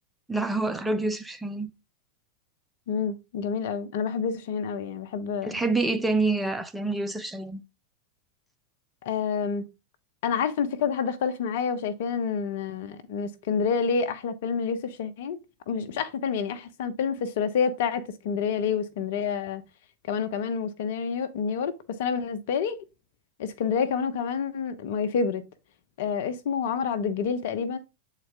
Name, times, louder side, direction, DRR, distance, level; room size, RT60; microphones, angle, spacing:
voice 1, 0.3-1.7 5.4-7.6, right 3 dB, 5° right, 0.9 m, -27 dB
voice 2, 2.9-5.6 9.0-9.6 10.2-15.4 15.7-19.6 20.1-22.8 23.4-25.4 26.0-27.8, left 6 dB, 65° left, 1.0 m, -28 dB
7.8 x 4.2 x 3.4 m
hypercardioid pair, 95°, 0 cm